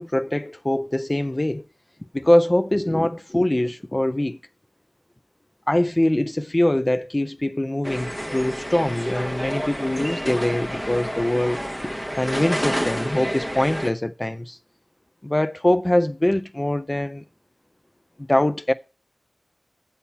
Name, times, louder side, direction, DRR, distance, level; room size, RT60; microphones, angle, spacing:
voice 1, 0.0-1.6 2.1-4.4 5.7-11.6 12.2-14.6 15.2-17.2 18.3-18.7, left 1 dB, 25° left, 0.4 m, -23 dB
sound 1, 7.8-13.9, equal, 10° left, 0.9 m, -29 dB
7.1 x 5.6 x 7.1 m
wide cardioid pair, 70°, 0 cm